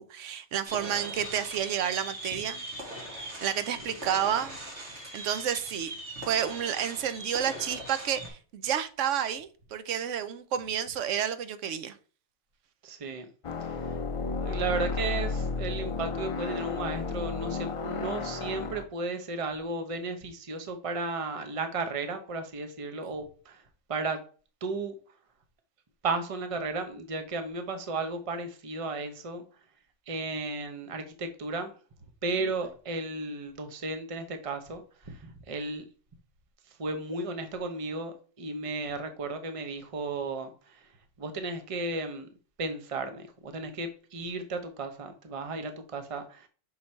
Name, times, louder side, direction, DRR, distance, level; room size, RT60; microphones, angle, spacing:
voice 1, 0.0-2.6 3.2-4.6 5.1-5.9 6.3-12.0, right 9 dB, 80° right, 1.0 m, -30 dB
sound 1, 0.6-8.3, right 1 dB, 65° right, 2.3 m, -40 dB
voice 2, 12.8-13.3 13.7-13.8 14.4-23.6 23.9-24.2 24.6-24.9 26.0-29.4 30.1-31.7 32.2-35.8 36.8-40.9 41.2-42.3 42.6-46.5, right 3 dB, 30° right, 0.8 m, -34 dB
sound 2, 13.4-18.8, left 4 dB, 50° left, 0.4 m, -33 dB
5.8 x 4.0 x 4.3 m
omnidirectional pair, 1.3 m